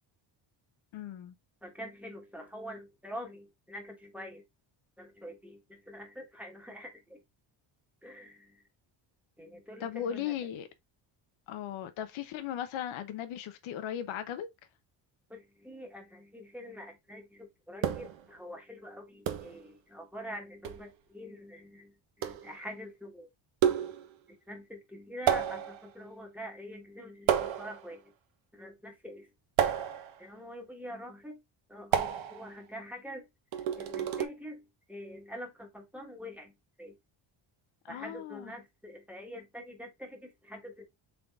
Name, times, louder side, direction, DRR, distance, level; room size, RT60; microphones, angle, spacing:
voice 1, 0.9-1.3 9.8-10.7 11.5-14.5 37.8-38.5, left 10 dB, 75° left, 0.8 m, -37 dB
voice 2, 1.6-4.4 5.0-7.2 8.0-8.6 9.4-10.3 15.3-23.3 24.3-28.1 28.5-29.3 30.2-31.4 31.7-33.3 33.5-37.0 37.9-40.9, equal, 5° right, 1.2 m, -45 dB
sound 1, 17.8-18.3 19.3-19.6 20.6-20.9 22.2-22.5 23.6-24.1 25.3-25.9 27.3-27.9 29.6-30.2 31.9-32.5 33.5-34.3, right 9 dB, 70° right, 1.0 m, -30 dB
3.8 x 3.6 x 3.5 m
cardioid pair, 135°, 49 cm